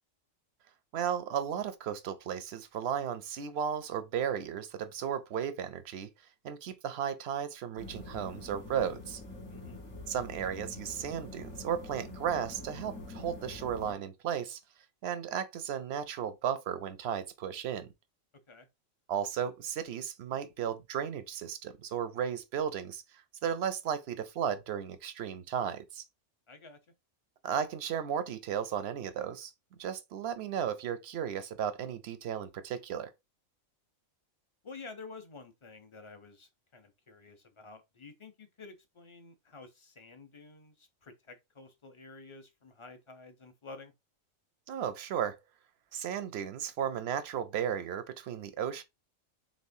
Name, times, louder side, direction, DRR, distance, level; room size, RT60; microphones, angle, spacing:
voice 1, 0.9-6.1 6.4-9.2 10.1-14.6 15.0-17.9 19.1-26.0 27.4-29.5 29.8-33.1 44.7-45.4 45.9-48.8, right 8 dB, 65° right, 0.7 m, -35 dB
sound 1, 7.8-13.9, left 2 dB, 60° left, 1.9 m, -45 dB
voice 2, 26.5-26.8 34.6-43.9, left 3 dB, 35° left, 0.5 m, -50 dB
4.2 x 3.6 x 2.6 m
omnidirectional pair, 1.4 m